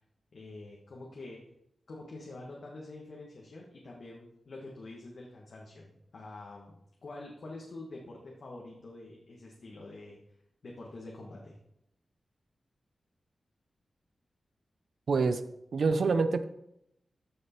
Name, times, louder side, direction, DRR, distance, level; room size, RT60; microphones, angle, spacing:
voice 1, 0.3-1.4 1.9-6.7 7.0-10.2 10.6-11.5, left 2 dB, 60° left, -2 dB, 1.7 m, -46 dB
voice 2, 15.1-15.4 15.7-16.4, right 4 dB, 65° right, 10 dB, 0.7 m, -26 dB
14.0 x 6.5 x 4.5 m, 0.80 s
wide cardioid pair, 150°, 0 cm